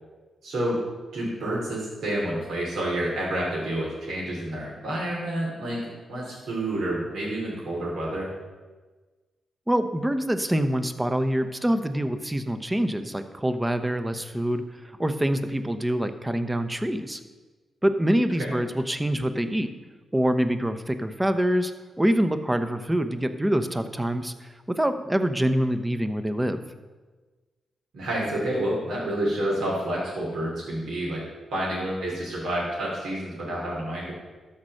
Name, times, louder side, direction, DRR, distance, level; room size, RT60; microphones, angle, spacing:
voice 1, 0.4-0.8 1.1-8.3 18.4-18.6 27.9-31.2 31.5-34.1, right 1 dB, 75° right, -5 dB, 2.8 m, -29 dB
voice 2, 9.7-14.6 15.0-17.2 17.8-19.7 20.1-21.7 22.0-26.6, right 1 dB, 15° right, 9 dB, 0.9 m, -25 dB
13.0 x 4.3 x 6.5 m, 1.3 s
supercardioid pair, 50°, 0 cm